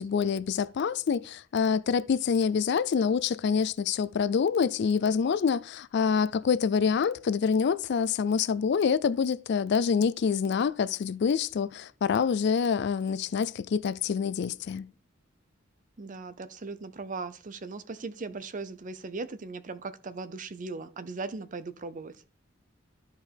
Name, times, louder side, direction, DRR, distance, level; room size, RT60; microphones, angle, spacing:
voice 1, 0.0-14.9, left 6 dB, 60° left, 0.4 m, -26 dB
voice 2, 16.0-22.1, right 3 dB, 40° right, 0.6 m, -38 dB
13.0 x 4.5 x 3.4 m
head